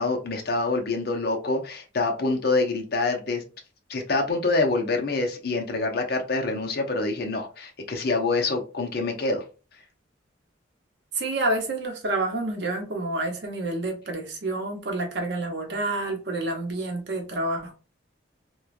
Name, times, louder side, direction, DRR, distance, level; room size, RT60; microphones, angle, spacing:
voice 1, 0.0-3.4 3.9-9.4, left 3 dB, 55° left, 0.7 m, -26 dB
voice 2, 11.1-17.7, right 2 dB, 60° right, 0.8 m, -28 dB
3.1 x 2.2 x 2.4 m
head